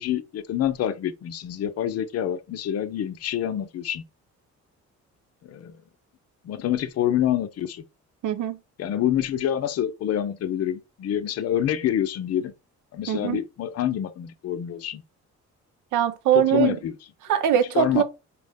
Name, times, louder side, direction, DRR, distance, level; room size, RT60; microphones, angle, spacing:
voice 1, 0.0-4.0 5.4-5.7 6.4-7.8 8.8-12.5 12.9-15.0 16.3-17.0 17.7-18.0, left 10 dB, 55° left, 0.5 m, -27 dB
voice 2, 8.2-8.6 13.1-13.4 15.9-16.8 17.3-18.0, right 10 dB, 80° right, 0.6 m, -21 dB
4.5 x 2.1 x 3.4 m
cardioid pair, 90°, 30 cm